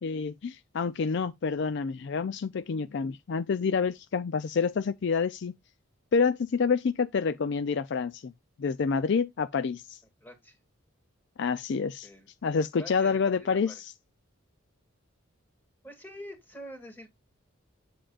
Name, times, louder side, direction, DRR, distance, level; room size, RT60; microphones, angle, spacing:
voice 1, 0.0-5.5 6.1-8.3 8.6-10.0 11.4-12.1 12.4-13.9, left 5 dB, 55° left, 0.4 m, -28 dB
voice 2, 10.2-10.6 12.0-12.3 12.5-13.8 15.8-17.1, equal, 10° left, 2.3 m, -46 dB
8.6 x 7.6 x 2.4 m
head